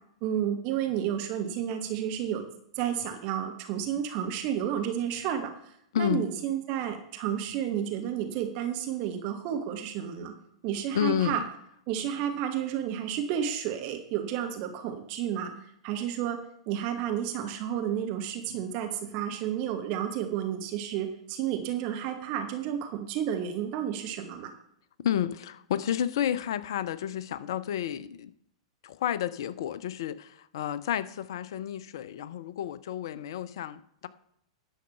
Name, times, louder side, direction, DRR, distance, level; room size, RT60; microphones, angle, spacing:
voice 1, 0.2-2.5 2.8-10.3 10.6-11.4 11.9-15.5 15.8-16.4 16.7-24.5, right 9 dB, 40° right, 1.2 m, -31 dB
voice 2, 5.9-6.3 10.9-11.5 25.0-28.3 28.8-34.1, left 10 dB, 55° left, 0.5 m, -31 dB
10.0 x 6.4 x 5.5 m
figure-of-eight pair, 100°, 3 cm